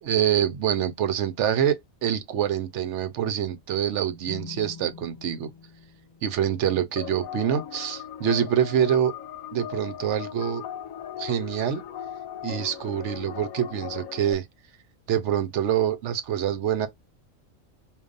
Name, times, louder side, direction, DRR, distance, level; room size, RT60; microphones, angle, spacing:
voice 1, 0.0-5.5 6.2-9.1 9.5-10.6 11.2-11.8 12.4-14.5 15.1-16.9, right 9 dB, 65° right, 0.9 m, -25 dB
sound 1, 4.3-7.8, left 5 dB, 30° left, 0.4 m, -46 dB
sound 2, 7.0-14.3, left 10 dB, 75° left, 1.1 m, -38 dB
5.0 x 2.6 x 2.4 m
omnidirectional pair, 1.4 m